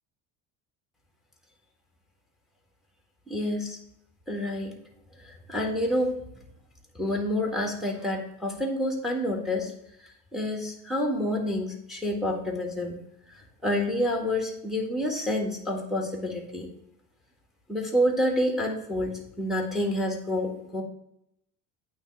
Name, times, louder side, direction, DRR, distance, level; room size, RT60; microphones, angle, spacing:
voice 1, 3.3-3.8 4.3-4.7 5.2-6.1 6.9-9.7 10.3-13.0 13.6-16.7 17.7-20.8, left 1 dB, ahead, 1 dB, 1.6 m, -28 dB
8.7 x 3.2 x 5.8 m, 0.78 s
supercardioid pair, 100°, 42 cm